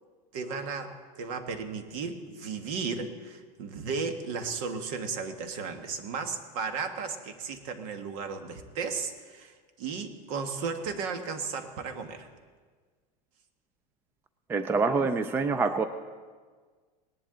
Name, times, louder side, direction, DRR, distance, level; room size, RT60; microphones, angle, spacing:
voice 1, 0.3-12.3, right 5 dB, 60° right, 7 dB, 1.4 m, -35 dB
voice 2, 14.5-15.8, right 4 dB, 10° right, 10 dB, 0.4 m, -26 dB
19.0 x 10.5 x 3.8 m, 1.5 s
supercardioid pair, 145°, 20 cm